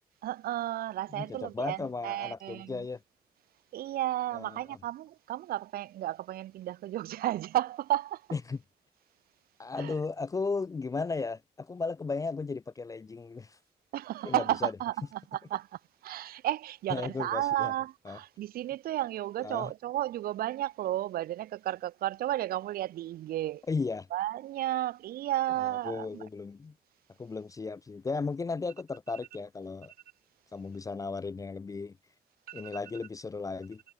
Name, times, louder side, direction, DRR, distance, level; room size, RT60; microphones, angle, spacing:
voice 1, 0.2-2.9 3.7-8.2 9.8-9.9 13.9-15.7 16.0-23.6 24.1-26.2 32.5-32.8, right 14 dB, 65° right, 0.8 m, -33 dB
voice 2, 1.1-3.0 4.3-4.8 8.3-8.6 9.6-13.6 14.2-14.7 16.9-17.7 18.1-18.2 19.4-19.7 23.7-24.1 25.6-26.7 27.2-29.9 30.5-32.0 32.5-33.8, left 4 dB, 20° left, 0.3 m, -35 dB
hypercardioid pair, 45°, 16 cm